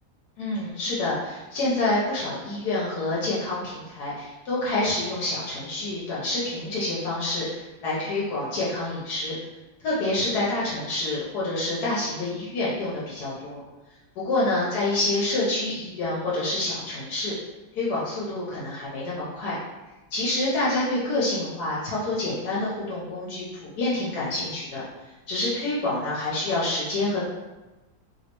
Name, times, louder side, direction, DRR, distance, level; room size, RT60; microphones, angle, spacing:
voice 1, 0.4-9.3 9.8-13.6 14.2-17.3 17.7-19.6 20.1-24.8 25.3-27.3, left 2 dB, 75° left, -7 dB, 1.3 m, -27 dB
3.1 x 3.1 x 2.9 m, 1.1 s
omnidirectional pair, 1.7 m